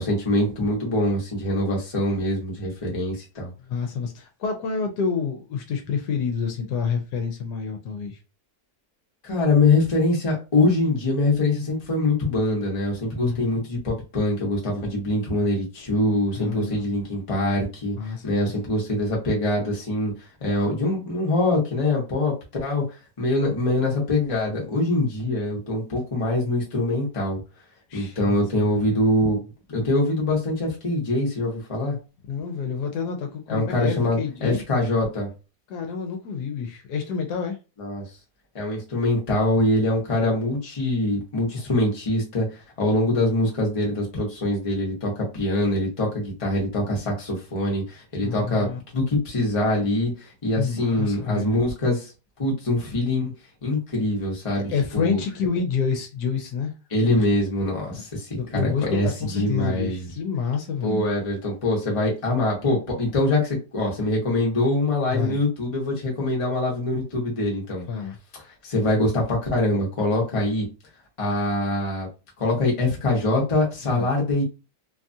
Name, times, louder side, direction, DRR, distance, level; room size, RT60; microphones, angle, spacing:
voice 1, 0.0-3.5 9.2-17.9 18.2-20.1 20.4-22.3 22.6-22.8 23.2-27.4 27.9-29.4 29.7-32.0 33.5-35.3 37.8-38.0 38.5-48.7 48.9-52.1 52.4-53.3 53.6-55.2 56.9-60.1 60.8-67.8 68.6-70.6 71.2-72.1 72.4-74.4, left 2 dB, 25° left, 0.8 m, -24 dB
voice 2, 3.6-8.2 13.2-13.6 16.4-16.8 18.0-18.5 27.9-28.9 32.3-34.6 35.7-37.6 48.2-48.8 50.6-51.6 54.5-56.7 57.0-57.2 57.9-58.0 58.4-61.1 65.1-65.4 67.9-68.2 73.8-74.1, left 6 dB, 75° left, 1.1 m, -28 dB
2.8 x 2.3 x 2.6 m
omnidirectional pair, 1.8 m